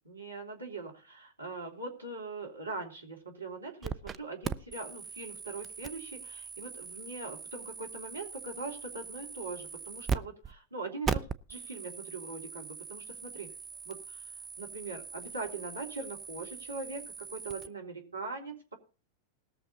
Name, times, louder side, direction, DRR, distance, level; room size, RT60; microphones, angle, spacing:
voice 1, 0.0-13.5 13.8-14.3 14.6-18.8, right 3 dB, 80° right, 0 dB, 3.3 m, -41 dB
sound 1, 3.8-4.2 4.4-10.2 10.4-10.5 11.0-17.7, right 6 dB, 20° right, 0.7 m, -40 dB
20.5 x 7.0 x 4.1 m, 0.36 s
figure-of-eight pair, 90°, 0 cm